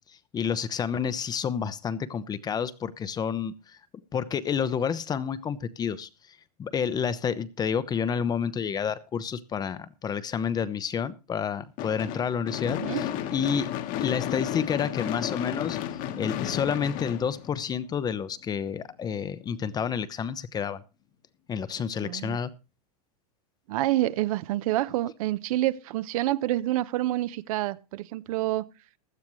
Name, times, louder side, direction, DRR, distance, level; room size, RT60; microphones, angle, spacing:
voice 1, 0.1-6.1 6.6-13.1 13.3-13.7 14.0-15.8 16.2-20.8 21.5-22.5, left 7 dB, 20° left, 0.8 m, -29 dB
Gunshot gunfire / Fireworks, 11.8-18.0, left 11 dB, 40° left, 1.4 m, -33 dB
voice 2, 12.6-13.0 22.0-22.4 23.7-28.7, right 15 dB, 60° right, 0.9 m, -28 dB
16.0 x 12.0 x 3.1 m
supercardioid pair, 135°, 20 cm